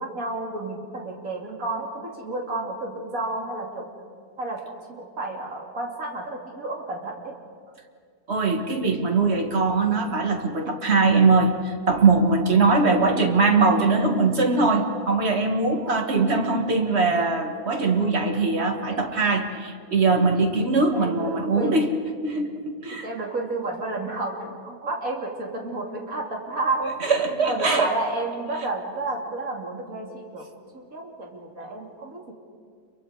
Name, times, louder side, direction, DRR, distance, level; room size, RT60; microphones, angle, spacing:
voice 1, 0.0-3.9 4.4-7.3 15.9-16.0 17.1-17.3 18.9-19.1 19.3-19.5 20.9-21.9 22.9-32.3, right 2 dB, 55° right, 0 dB, 3.2 m, -31 dB
voice 2, 8.3-21.9 22.2-23.1 27.0-27.9, right 3 dB, 40° right, 4 dB, 2.1 m, -21 dB
29.0 x 23.5 x 4.9 m, 2.1 s
omnidirectional pair, 1.7 m